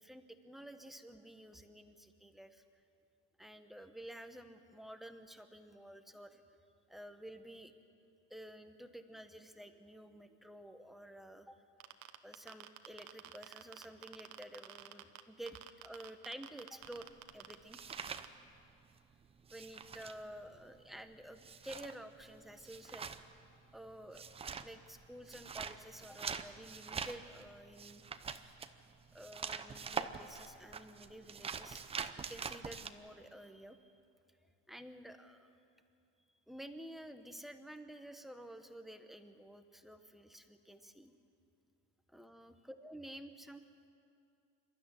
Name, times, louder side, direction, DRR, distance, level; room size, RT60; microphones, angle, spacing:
voice 1, 0.0-2.6 3.4-6.4 6.9-7.7 8.3-11.6 12.2-17.1 17.3-17.8 19.5-23.1 23.7-24.2 24.6-28.0 29.1-31.8 32.2-33.9 34.7-35.6 36.5-41.2 42.1-43.6, right 1 dB, ahead, 7 dB, 1.0 m, -51 dB
sound 1, 11.8-15.2 15.5-18.3, right 15 dB, 60° right, 1.2 m, -49 dB
sound 2, 16.8-19.0 19.2-32.9, right 6 dB, 15° right, 0.7 m, -44 dB
27.0 x 13.0 x 9.8 m, 2.5 s
cardioid pair, 145°, 33 cm